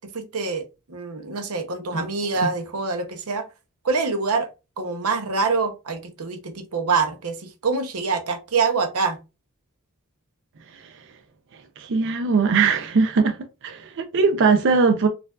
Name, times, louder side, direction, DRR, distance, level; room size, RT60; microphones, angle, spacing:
voice 1, 0.1-0.6 0.9-3.5 3.8-4.5 4.8-9.2, right 4 dB, 90° right, 0.8 m, -25 dB
voice 2, 11.8-13.4 13.6-15.1, right 4 dB, 55° right, 0.5 m, -20 dB
4.4 x 2.5 x 2.3 m
head